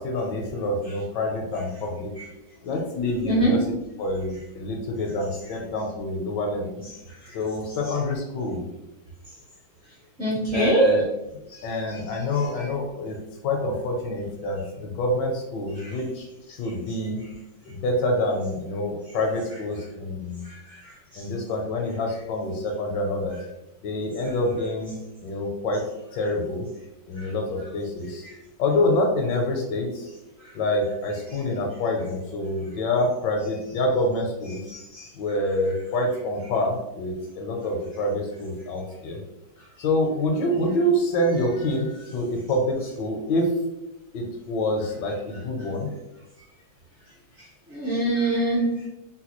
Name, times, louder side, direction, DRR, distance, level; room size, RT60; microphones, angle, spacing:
voice 1, 0.0-2.1 2.6-3.7 4.0-6.8 7.3-8.6 10.5-11.0 11.6-13.2 13.4-17.2 17.7-20.4 21.2-23.4 23.8-24.9 25.2-25.8 26.1-26.7 27.1-28.2 28.6-30.1 30.5-34.6 35.1-39.2 39.8-41.9 42.1-43.5 44.1-45.9 48.5-48.9, left 1 dB, 75° left, 1 dB, 1.2 m, -26 dB
voice 2, 10.2-10.9 15.8-15.9 34.9-35.0 47.7-48.7, right 1 dB, 50° right, -6 dB, 0.9 m, -22 dB
3.9 x 2.2 x 2.9 m, 0.93 s
omnidirectional pair, 2.1 m